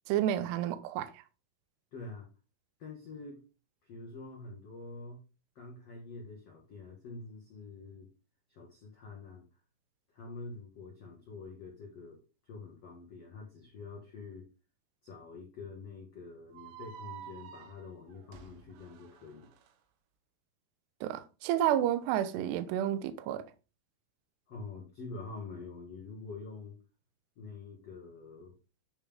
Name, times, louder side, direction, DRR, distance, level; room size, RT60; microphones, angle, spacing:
voice 1, 0.1-1.1 21.0-23.4, right 11 dB, 90° right, 2.3 m, -30 dB
voice 2, 1.9-2.3 2.8-3.4 3.8-5.2 5.5-8.1 8.5-9.4 10.1-12.2 12.4-14.5 15.0-19.5 24.5-26.8 27.4-28.5, left 3 dB, 80° left, 1.4 m, -46 dB
sound 1, 16.5-19.7, right 9 dB, 75° right, 2.8 m, -50 dB
9.7 x 5.3 x 3.6 m
omnidirectional pair, 5.8 m